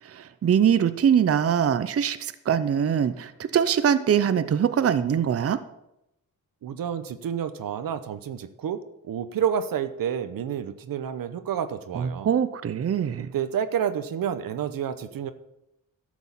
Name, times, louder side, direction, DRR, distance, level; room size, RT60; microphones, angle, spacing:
voice 1, 0.0-5.6 11.9-13.3, right 8 dB, 45° right, 12 dB, 0.6 m, -23 dB
voice 2, 6.6-12.3 13.3-15.3, right 8 dB, 85° right, 11 dB, 0.9 m, -29 dB
12.5 x 6.3 x 7.3 m, 0.87 s
cardioid pair, 100°, 34 cm